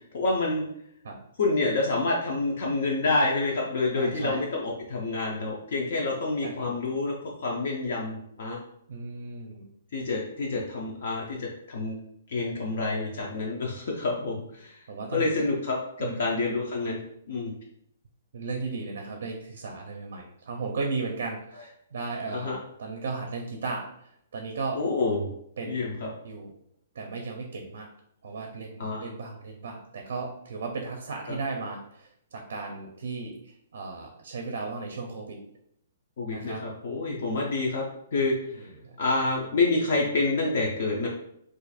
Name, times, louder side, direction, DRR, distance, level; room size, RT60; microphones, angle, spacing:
voice 1, 0.1-0.7 1.4-8.6 9.9-12.0 12.3-14.7 15.1-17.0 17.3-17.5 22.3-22.6 24.7-25.3 25.6-26.1 28.8-29.1 31.3-31.4 36.2-37.8 38.1-38.7 39.0-41.1, left 3 dB, 45° left, -2 dB, 0.5 m, -28 dB
voice 2, 3.9-4.4 6.4-6.7 8.9-9.7 14.9-15.3 16.0-16.2 18.3-24.8 25.6-25.8 26.2-26.5 26.9-27.9 28.2-35.4 36.3-36.6 37.1-37.4 38.5-39.0, right 4 dB, 50° right, 2 dB, 0.5 m, -35 dB
2.5 x 2.4 x 4.0 m, 0.72 s
hypercardioid pair, 180°, 0 cm